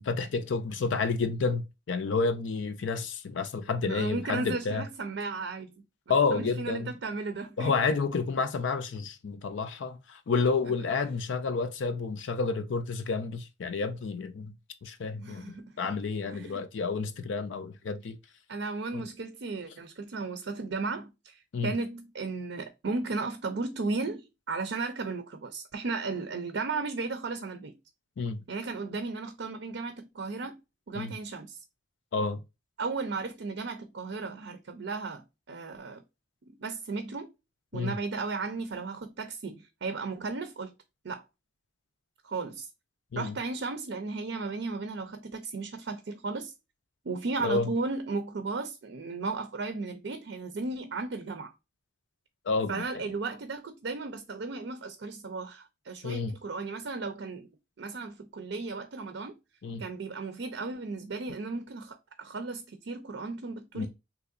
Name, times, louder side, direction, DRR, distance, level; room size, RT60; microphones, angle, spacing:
voice 1, 0.0-4.8 6.1-6.9 7.6-14.5 14.8-18.2 18.9-19.0 21.5-21.7 28.2-28.4 31.0-31.1 32.1-32.4 37.7-37.9 43.1-43.4 47.4-47.7 52.5-52.8 56.0-56.3 59.6-59.8 63.7-63.9, left 4 dB, 70° left, 0.4 m, -30 dB
voice 2, 3.8-7.7 10.6-10.7 15.2-15.7 16.3-16.6 18.5-27.8 28.5-30.6 30.9-31.6 32.8-36.0 36.6-37.3 37.7-40.7 41.0-41.2 42.2-42.7 43.1-46.5 47.0-51.5 52.7-57.5 57.8-59.4 59.8-63.9, right 3 dB, 65° right, 0.5 m, -35 dB
3.7 x 2.9 x 2.4 m
head